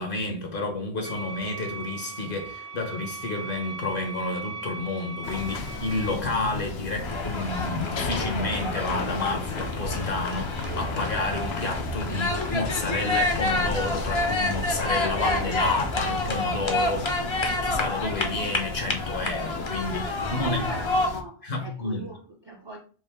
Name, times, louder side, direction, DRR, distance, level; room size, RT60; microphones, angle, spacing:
voice 1, 0.0-17.2 17.4-20.6 21.4-22.0, left 2 dB, 60° left, 1.0 m, -30 dB
sound 1, 1.0-6.1, right 4 dB, 75° right, 0.9 m, -38 dB
sound 2, 5.2-21.2, left 4 dB, 85° left, 0.9 m, -35 dB
sound 3, 7.0-21.1, left 2 dB, 35° left, 0.6 m, -28 dB
voice 2, 20.2-22.8, right 1 dB, 35° right, 0.5 m, -40 dB
4.6 x 2.5 x 3.4 m
omnidirectional pair, 1.0 m